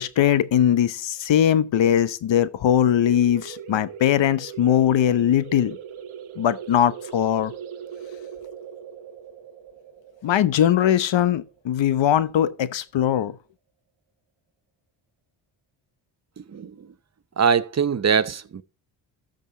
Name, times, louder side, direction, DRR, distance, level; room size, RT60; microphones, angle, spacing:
voice 1, 0.0-5.8 6.4-7.5 10.2-13.3, left 10 dB, 60° left, 1.0 m, -20 dB
sound 1, 2.8-12.1, right 8 dB, 75° right, 1.3 m, -40 dB
voice 2, 16.4-16.9 17.4-18.6, right 6 dB, 35° right, 0.7 m, -23 dB
13.5 x 5.3 x 3.9 m
cardioid pair, 65°, 49 cm